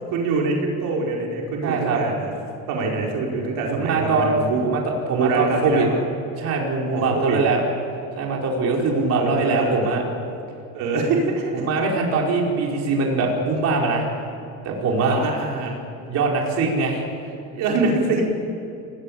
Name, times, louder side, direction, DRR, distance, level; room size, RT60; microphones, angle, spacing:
voice 1, 0.1-2.3 2.7-4.7 5.1-6.0 6.9-7.4 9.1-10.0 10.7-11.5 15.0-15.8 17.5-18.3, right 3 dB, 70° right, -1 dB, 5.1 m, -24 dB
voice 2, 1.6-2.0 3.7-4.8 5.1-5.9 6.4-7.6 8.2-10.0 11.5-14.0 14.6-15.2 16.1-17.0, right 3 dB, 50° right, -1 dB, 4.8 m, -22 dB
28.5 x 19.5 x 8.8 m, 2.7 s
cardioid pair, 140°, 33 cm